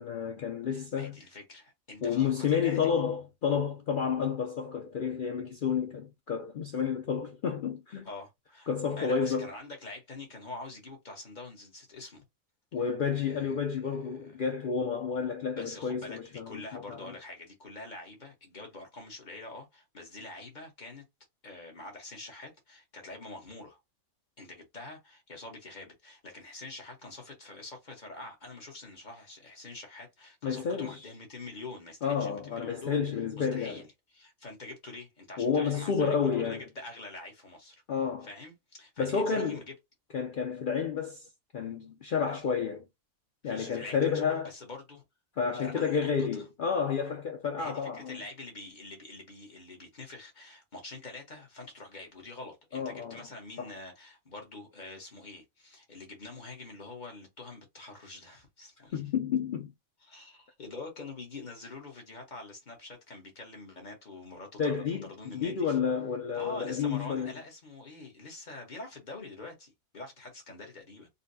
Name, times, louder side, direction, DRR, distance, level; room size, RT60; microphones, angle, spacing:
voice 1, 0.0-1.2 2.0-8.1 8.7-9.5 12.7-17.1 30.4-31.1 32.0-33.8 35.4-36.6 37.9-38.3 39.0-39.6 40.1-41.3 41.5-42.9 43.4-44.5 45.4-48.2 52.7-53.3 53.6-53.7 58.9-59.7 64.6-67.3, left 6 dB, 65° left, 0.5 m, -30 dB
voice 2, 0.7-2.9 8.0-8.7 9.0-12.2 12.9-13.5 13.8-14.0 14.2-14.4 15.5-21.0 21.4-23.8 24.4-33.0 33.3-33.9 34.1-37.8 38.2-39.6 43.4-45.0 45.6-46.4 47.6-59.0 60.0-65.8 66.3-71.1, left 2 dB, 35° left, 1.1 m, -45 dB
4.0 x 2.1 x 2.6 m
omnidirectional pair, 1.4 m